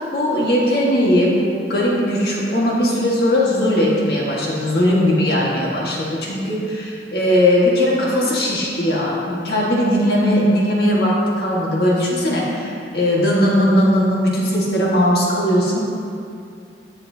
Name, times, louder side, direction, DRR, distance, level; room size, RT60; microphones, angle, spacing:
voice 1, 0.1-15.8, equal, 60° left, -5 dB, 1.7 m, -18 dB
14.0 x 8.9 x 2.8 m, 2.4 s
head